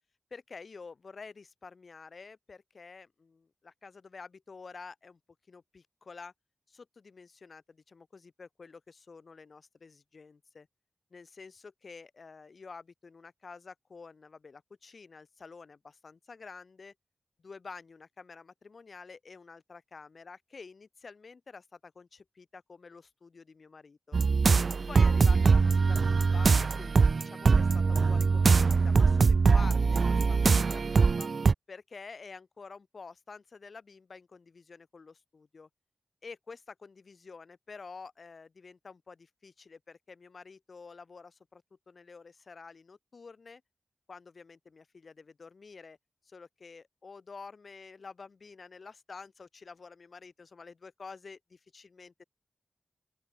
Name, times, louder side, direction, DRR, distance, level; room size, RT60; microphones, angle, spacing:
voice 1, 0.3-5.2 5.5-6.3 6.7-10.7 11.1-16.9 17.4-24.2 24.9-31.3 31.7-35.7 36.2-43.6 44.1-46.0 46.2-52.2, left 4 dB, 70° left, 6.1 m, -49 dB
sound 1, 24.1-31.5, right 4 dB, 70° right, 1.0 m, -23 dB
open air
cardioid pair, 45°, 0 cm